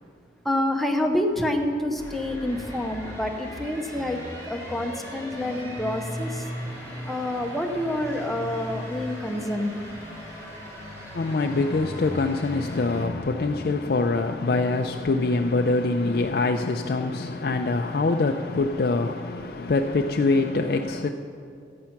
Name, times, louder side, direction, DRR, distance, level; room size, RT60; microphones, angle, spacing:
voice 1, 0.4-6.5 7.1-9.7, left 1 dB, ahead, 0.7 m, -27 dB
sound 1, 2.0-13.0, equal, 15° right, 3.2 m, -38 dB
voice 2, 11.1-21.1, left 3 dB, 55° left, 0.4 m, -24 dB
13.5 x 8.6 x 5.8 m
head